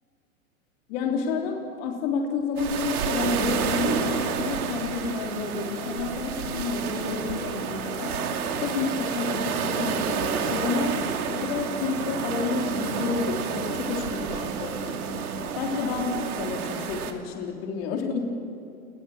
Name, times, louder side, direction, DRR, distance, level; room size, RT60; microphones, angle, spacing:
voice 1, 0.9-8.2 8.6-14.8 15.5-18.2, left 5 dB, 45° left, 2 dB, 3.4 m, -30 dB
sound 1, 2.6-17.1, right 7 dB, 80° right, 2.7 m, -30 dB
sound 2, 3.7-16.8, right 2 dB, 60° right, 5.2 m, -38 dB
30.0 x 20.5 x 7.2 m, 2.5 s
hypercardioid pair, 150°, 43 cm